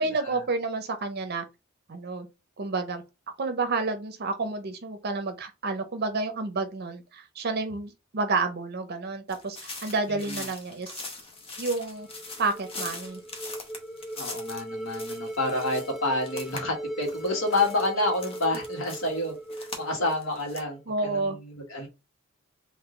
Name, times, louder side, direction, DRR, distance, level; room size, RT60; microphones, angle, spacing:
voice 1, 0.0-1.4 1.9-2.3 2.6-11.0 11.6-12.1 12.4-13.2 20.9-21.4, right 3 dB, 50° right, 0.6 m, -30 dB
Footsteps on Dry Leaves Grass and Tarmac (Cornwall UK), 9.3-16.6 16.9-20.6, left 3 dB, 25° left, 0.9 m, -42 dB
sound 1, 11.6-20.8, right 1 dB, ahead, 0.4 m, -39 dB
voice 2, 14.2-21.9, left 2 dB, 65° left, 1.5 m, -29 dB
3.8 x 2.6 x 3.7 m
head